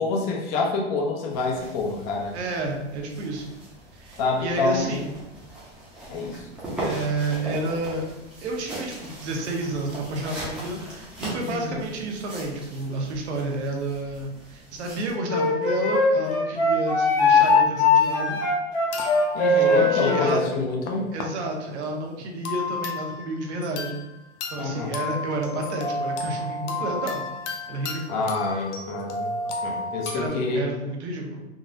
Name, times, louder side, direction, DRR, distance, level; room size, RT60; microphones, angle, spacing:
voice 1, 0.0-2.3 4.2-5.1 6.1-6.4 11.4-11.9 19.3-21.1 24.6-24.9 28.1-29.3 29.6-30.7, left 3 dB, 35° left, 0 dB, 0.6 m, -27 dB
sound 1, 1.3-15.1, right 1 dB, 5° right, 0.6 m, -39 dB
voice 2, 2.3-3.5 4.0-5.1 6.8-8.0 8.4-18.4 19.5-20.4 21.1-24.0 24.5-27.2 27.7-28.2 30.1-31.5, right 2 dB, 70° right, 1 dB, 0.8 m, -30 dB
Wind instrument woodwind instrument, 15.3-20.3, left 3 dB, 60° left, 1.3 m, -20 dB
sound 2, 18.9-21.2 21.7-21.9 22.5-24.1 24.4-30.3, left 3 dB, 75° left, 0.6 m, -33 dB
3.7 x 2.0 x 2.6 m, 0.96 s
hypercardioid pair, 140°, 35 cm